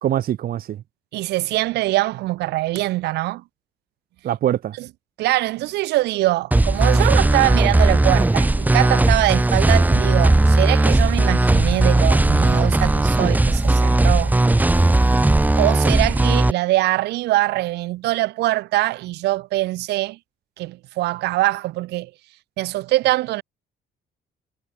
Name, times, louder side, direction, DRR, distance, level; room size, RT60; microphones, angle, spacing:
voice 1, 0.0-0.8 4.2-4.8, right 11 dB, 60° right, 4.1 m, -23 dB
voice 2, 1.1-3.4 4.8-4.9 5.2-14.4 15.6-20.2 20.6-22.1 22.6-23.4, right 18 dB, 80° right, 1.8 m, -23 dB
sound 1, 6.5-16.5, right 2 dB, 10° right, 1.6 m, -17 dB
cardioid pair, 110°, 17 cm